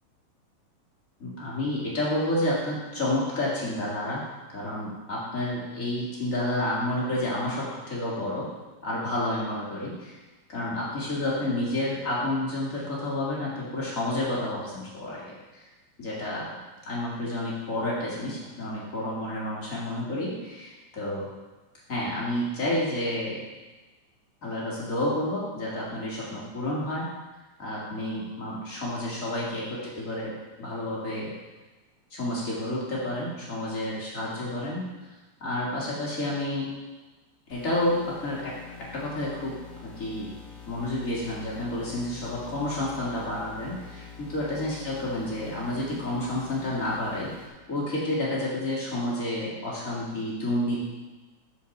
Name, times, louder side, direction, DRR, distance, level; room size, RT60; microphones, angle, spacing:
voice 1, 1.2-4.2 4.5-8.4 8.8-10.2 10.5-15.6 16.0-16.6 16.9-21.3 21.9-23.4 24.4-27.1 27.6-31.3 32.1-34.8 35.4-36.7 37.5-38.5 38.9-39.5 39.8-40.3 40.7-50.8, left 1 dB, 30° left, -6 dB, 2.0 m, -30 dB
sound 1, 37.5-47.5, left 6 dB, 65° left, 2.8 m, -45 dB
12.5 x 4.8 x 4.1 m, 1.2 s
omnidirectional pair, 4.0 m